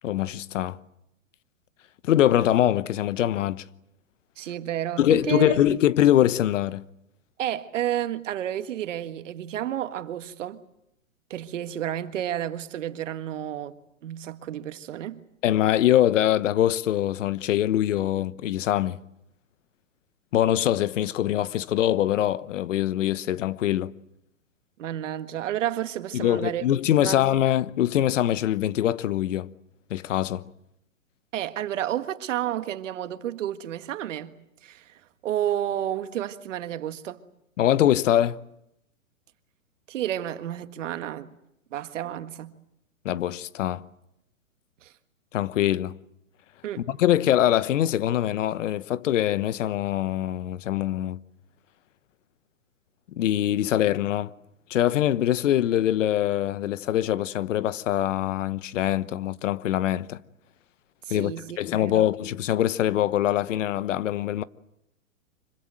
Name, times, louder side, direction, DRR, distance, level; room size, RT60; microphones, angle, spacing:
voice 1, 0.0-0.8 2.0-3.6 5.0-6.8 15.4-19.0 20.3-23.9 26.1-29.5 29.9-30.4 37.6-38.4 43.0-43.8 45.3-45.9 46.9-51.2 53.2-54.3 54.7-60.2 61.1-64.4, left 12 dB, 60° left, 1.1 m, -23 dB
voice 2, 4.4-5.8 7.4-10.6 11.3-15.2 24.8-26.7 27.0-27.2 31.3-34.4 34.6-34.9 35.2-37.2 39.9-41.3 41.7-42.5 44.8-44.9 46.6-46.8 61.1-62.0, right 11 dB, 60° right, 1.8 m, -31 dB
25.5 x 24.5 x 7.8 m
hypercardioid pair, 145°, 41 cm